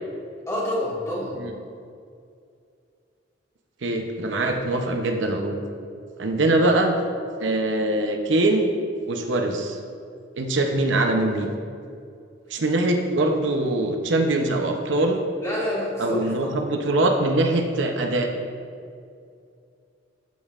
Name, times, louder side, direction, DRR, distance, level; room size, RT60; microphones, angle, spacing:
voice 1, 0.5-1.4 15.4-16.5, left 1 dB, 15° left, -6 dB, 1.8 m, -27 dB
voice 2, 3.8-5.6 6.2-7.0 7.4-8.7 9.1-9.8 10.4-11.5 12.5-15.2 16.0-18.3, right 2 dB, 80° right, 4 dB, 0.7 m, -22 dB
13.5 x 5.4 x 2.4 m, 2.4 s
head